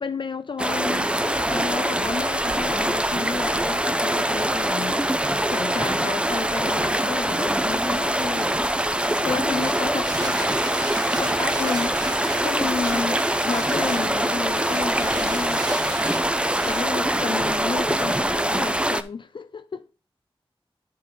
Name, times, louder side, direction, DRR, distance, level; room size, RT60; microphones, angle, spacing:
voice 1, 0.0-15.7 16.7-19.9, left 5 dB, 60° left, 0.3 m, -32 dB
sound 1, 0.6-19.0, right 1 dB, 10° right, 0.5 m, -23 dB
sound 2, 8.0-16.9, right 2 dB, 45° right, 1.0 m, -37 dB
voice 2, 9.3-10.2, equal, 5° left, 1.5 m, -45 dB
11.0 x 3.7 x 4.4 m
wide cardioid pair, 70°, 9 cm